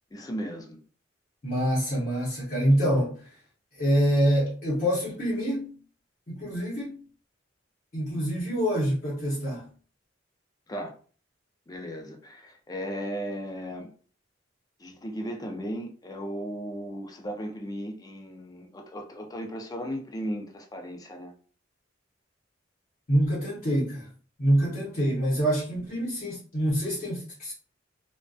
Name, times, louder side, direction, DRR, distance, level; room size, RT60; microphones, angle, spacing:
voice 1, 0.1-0.8 10.7-10.9 11.7-13.9 14.8-21.3, equal, 20° left, 0.4 m, -36 dB
voice 2, 1.4-3.3 3.8-5.8 6.3-7.0 7.9-9.7 23.1-24.1 24.4-27.5, equal, 40° left, 0.8 m, -26 dB
2.5 x 2.2 x 2.3 m
head